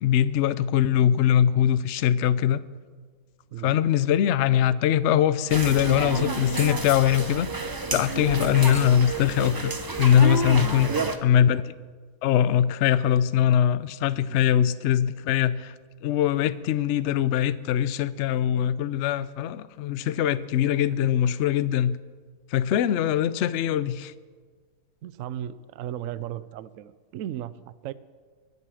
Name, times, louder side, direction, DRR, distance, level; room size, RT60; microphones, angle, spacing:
voice 1, 0.0-2.6 3.6-7.5 7.9-9.7 10.0-10.9 11.2-11.7 12.2-15.7 16.0-22.0 22.5-24.1, left 10 dB, 70° left, 15 dB, 0.7 m, -22 dB
sound 1, 5.5-11.2, right 3 dB, 30° right, 0.3 m, -30 dB
voice 2, 10.8-11.1 14.3-14.4 20.8-21.1 25.0-27.9, right 11 dB, 65° right, 16 dB, 0.8 m, -36 dB
23.0 x 8.3 x 6.3 m, 1.5 s
omnidirectional pair, 1.8 m